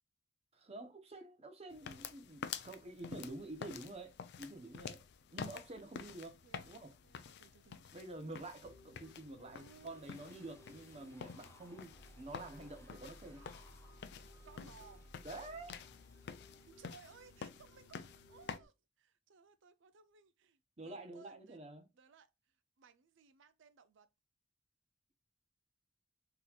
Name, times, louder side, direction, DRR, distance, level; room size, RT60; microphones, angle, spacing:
voice 1, 0.5-5.0 5.3-6.4 6.6-6.9 7.9-13.5 15.2-15.8 20.8-21.9, right 2 dB, 35° right, 0.7 m, -49 dB
sound 1, 1.7-18.6, left 7 dB, 60° left, 0.4 m, -50 dB
voice 2, 6.4-6.8 7.0-8.4 9.0-9.1 9.5-10.8 13.3-13.5 14.4-15.1 16.7-21.6 21.9-24.1, right 5 dB, 65° right, 0.5 m, -62 dB
sound 2, 8.6-18.7, equal, 90° left, 1.2 m, -60 dB
sound 3, 9.9-17.5, left 2 dB, 15° left, 0.7 m, -66 dB
3.9 x 2.8 x 2.3 m
head